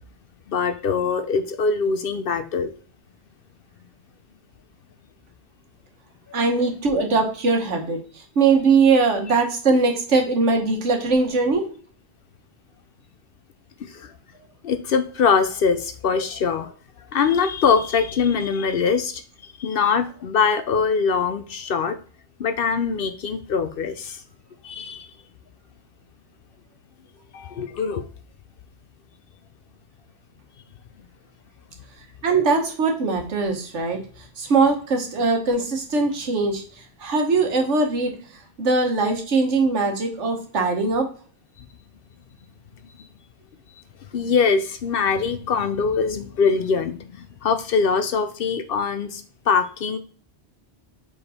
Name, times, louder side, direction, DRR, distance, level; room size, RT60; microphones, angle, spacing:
voice 1, 0.5-2.7 13.9-14.1 14.6-16.7 17.1-19.2 19.6-22.0 22.4-24.2 24.6-25.1 27.3-28.0 44.1-50.0, left 5 dB, 60° left, 10 dB, 0.7 m, -23 dB
voice 2, 6.3-11.7 32.2-34.0 34.4-36.6 37.0-38.2 38.6-41.1, right 4 dB, 90° right, 3 dB, 1.5 m, -21 dB
5.0 x 4.6 x 4.2 m, 0.43 s
omnidirectional pair, 1.2 m